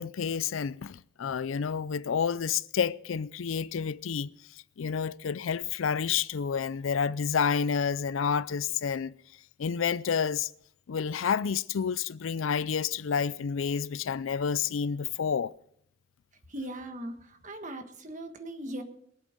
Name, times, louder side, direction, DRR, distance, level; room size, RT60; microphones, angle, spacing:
voice 1, 0.0-4.3 4.8-9.2 9.6-10.5 10.9-15.5, left 6 dB, 80° left, 0.4 m, -29 dB
voice 2, 16.5-18.8, right 1 dB, 40° right, 1.6 m, -39 dB
22.0 x 8.1 x 5.2 m
head